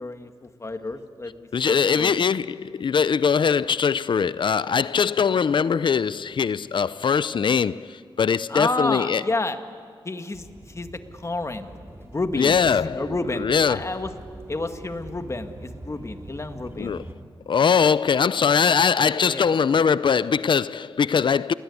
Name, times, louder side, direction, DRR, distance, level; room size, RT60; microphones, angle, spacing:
voice 1, 0.0-2.2 8.5-9.6 10.0-11.7 12.0-14.1 14.5-17.0 19.1-19.5, left 2 dB, 35° left, 1.9 m, -30 dB
voice 2, 1.5-9.2 12.4-13.1 13.4-13.8 16.8-17.0 17.5-21.5, left 6 dB, 65° left, 0.6 m, -21 dB
sound 1, 10.3-17.1, right 1 dB, 30° right, 3.6 m, -43 dB
Keyboard (musical), 13.0-15.8, right 5 dB, 70° right, 1.4 m, -44 dB
29.0 x 20.5 x 9.7 m
cardioid pair, 65°, 9 cm